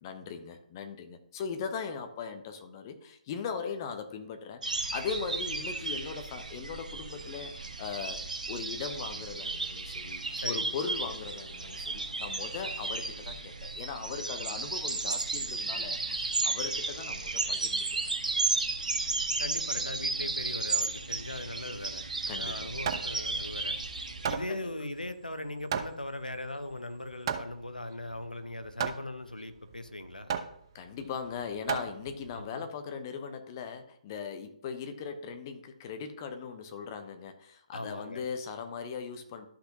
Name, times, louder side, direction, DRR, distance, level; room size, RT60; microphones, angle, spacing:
voice 1, 0.0-8.2 8.5-18.1 22.3-22.7 24.5-24.7 30.7-39.5, left 6 dB, 25° left, 8 dB, 0.9 m, -39 dB
sound 1, 4.6-24.3, right 3 dB, 65° right, 1.3 m, -34 dB
voice 2, 19.4-23.8 24.3-30.3 32.3-32.7 37.7-38.2, left 1 dB, 85° left, 9 dB, 1.0 m, -39 dB
Hammer, 22.3-32.5, right 7 dB, 35° right, 0.7 m, -37 dB
13.0 x 5.8 x 2.8 m, 0.70 s
figure-of-eight pair, 140°, 4 cm